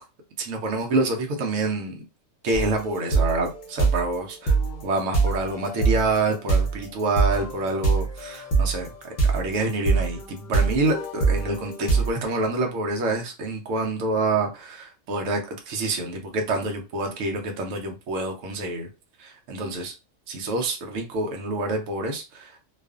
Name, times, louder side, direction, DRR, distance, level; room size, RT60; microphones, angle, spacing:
voice 1, 0.4-2.0 2.4-4.5 4.8-18.9 19.2-19.9 20.3-22.6, right 2 dB, 75° right, 0.9 m, -27 dB
sound 1, 2.5-12.1, right 4 dB, 45° left, 0.7 m, -24 dB
2.4 x 2.4 x 2.3 m
omnidirectional pair, 1.4 m